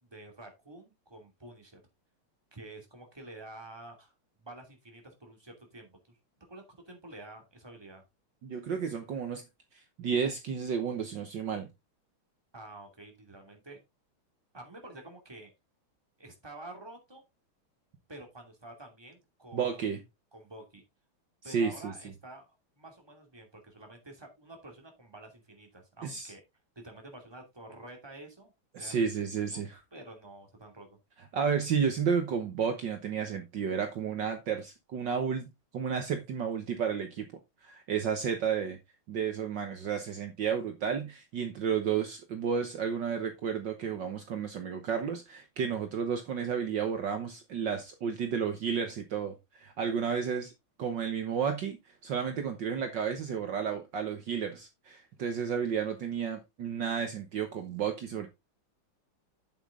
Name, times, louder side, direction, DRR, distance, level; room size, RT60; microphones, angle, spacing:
voice 1, 0.0-1.8 2.5-6.2 6.5-8.0 12.5-13.8 14.5-15.5 16.2-17.2 18.1-19.9 20.3-20.8 21.4-22.5 22.8-26.4 26.7-28.5 28.8-29.6 29.9-31.0, right 2 dB, 10° right, 2.7 m, -49 dB
voice 2, 8.4-9.4 10.0-11.7 19.5-20.0 21.4-21.9 26.0-26.3 28.7-29.8 31.3-37.3 37.6-38.8 39.1-50.5 50.8-51.8 52.0-58.3, right 7 dB, 60° right, 1.8 m, -32 dB
8.5 x 7.8 x 3.7 m
omnidirectional pair, 2.4 m